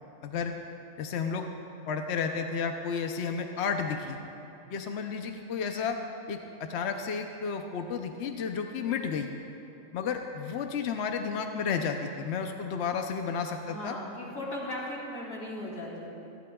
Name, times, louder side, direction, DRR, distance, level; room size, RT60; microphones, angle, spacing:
voice 1, 0.2-0.5 1.0-1.4 1.9-4.2 4.7-6.0 6.3-9.3 9.9-14.0, left 6 dB, 60° left, 4 dB, 0.9 m, -32 dB
voice 2, 13.7-16.1, left 1 dB, 80° left, -5 dB, 3.3 m, -37 dB
26.5 x 12.0 x 2.3 m, 2.9 s
omnidirectional pair, 1.4 m